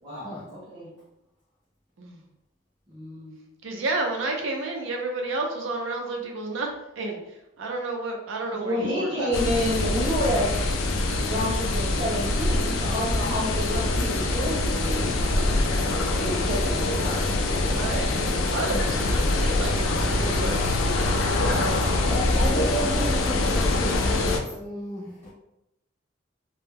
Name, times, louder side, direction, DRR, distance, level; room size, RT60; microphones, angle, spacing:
voice 1, 0.0-0.9 2.9-3.3 8.5-10.5 11.2-15.6 16.1-17.7, equal, 25° right, -8 dB, 0.7 m, -29 dB
voice 2, 3.6-6.7 7.0-9.6 17.6-20.6 21.3-21.8, right 2 dB, 80° right, 2 dB, 0.5 m, -31 dB
sound 1, 9.3-24.4, left 2 dB, 85° left, 0.4 m, -24 dB
voice 3, 22.0-25.3, equal, 10° left, -8 dB, 0.3 m, -32 dB
2.2 x 2.1 x 3.3 m, 0.86 s
head